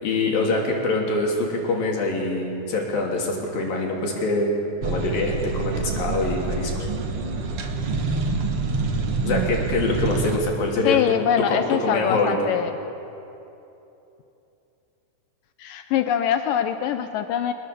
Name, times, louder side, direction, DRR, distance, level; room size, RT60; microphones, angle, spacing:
voice 1, 0.0-4.5 4.8-6.9 9.2-11.0 11.4-12.5, left 2 dB, 60° left, -1 dB, 4.6 m, -24 dB
sound 1, 4.8-10.4, right 4 dB, 65° right, 1.4 m, -26 dB
voice 2, 10.8-12.7 15.6-17.5, left 9 dB, 85° left, 8 dB, 2.0 m, -23 dB
25.5 x 21.0 x 6.9 m, 2.9 s
omnidirectional pair, 4.7 m